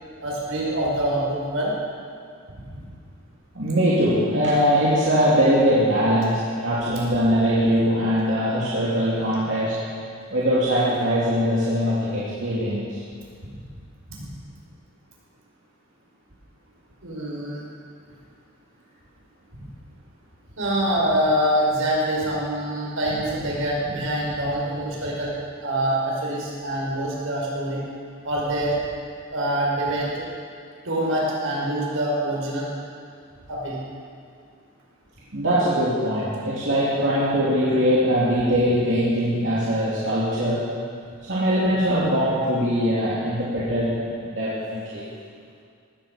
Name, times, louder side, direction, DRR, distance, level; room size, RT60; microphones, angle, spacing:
voice 1, 0.2-1.7 2.7-2.8 13.5-13.6 17.0-17.6 19.5-19.7 20.6-25.3 25.6-27.8 28.2-28.8 29.3-30.2 30.8-32.7 33.5-33.8, right 1 dB, 75° right, -4 dB, 5.1 m, -25 dB
voice 2, 3.5-9.8 10.3-13.0 35.3-40.6 41.3-45.0, equal, 60° right, -9 dB, 3.1 m, -21 dB
18.5 x 14.5 x 5.3 m, 2.2 s
head